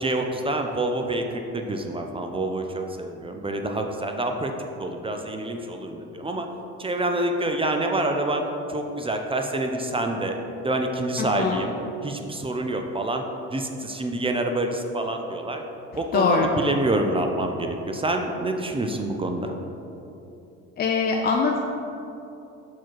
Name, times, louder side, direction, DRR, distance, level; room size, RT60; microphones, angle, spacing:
voice 1, 0.0-4.5 4.8-6.5 6.8-8.4 8.7-10.4 10.6-11.8 12.0-13.2 13.5-15.6 16.0-16.3 16.6-19.6, right 2 dB, 15° right, 4 dB, 0.5 m, -27 dB
voice 2, 11.2-11.6 16.1-16.5 20.8-21.6, left 4 dB, 30° left, 1 dB, 0.5 m, -22 dB
6.0 x 4.5 x 4.6 m, 2.9 s
supercardioid pair, 90°, 31 cm